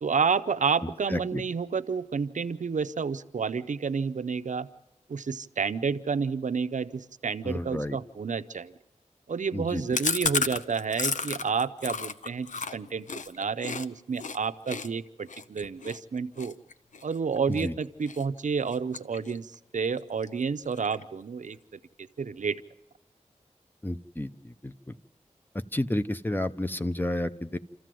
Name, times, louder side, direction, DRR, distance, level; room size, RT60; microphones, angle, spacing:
voice 1, 0.0-4.7 5.1-8.7 9.3-16.5 17.0-21.6 22.2-22.6, right 5 dB, 85° right, 11 dB, 0.7 m, -30 dB
voice 2, 1.1-1.4 7.4-8.0 9.5-9.8 17.5-17.7 23.8-24.7 25.7-27.6, left 1 dB, 15° left, 10 dB, 0.7 m, -31 dB
Chewing mastication, 9.9-13.9 14.2-14.4 14.7-17.7 18.1-18.4 18.7-19.6 19.8-19.9 20.2-20.3 20.6-21.2, left 4 dB, 85° left, 0.7 m, -32 dB
28.0 x 14.0 x 7.7 m, 0.93 s
wide cardioid pair, 75°, 13 cm